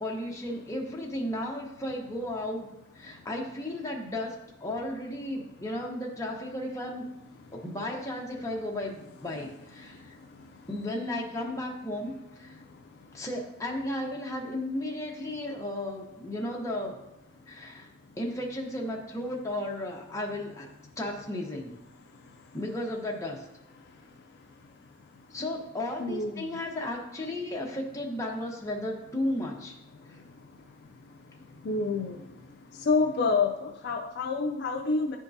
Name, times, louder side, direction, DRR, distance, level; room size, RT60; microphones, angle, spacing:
voice 1, 0.0-2.7 2.9-7.0 7.5-10.2 10.7-12.6 13.1-17.0 17.5-17.9 18.2-20.7 21.0-21.7 22.5-23.5 25.3-29.7 30.1-30.2, left 1 dB, 15° left, -1 dB, 0.8 m, -34 dB
voice 2, 26.0-26.4 31.6-32.1 32.9-35.2, left 4 dB, 50° left, 2 dB, 0.4 m, -27 dB
10.5 x 3.6 x 2.7 m, 0.90 s
head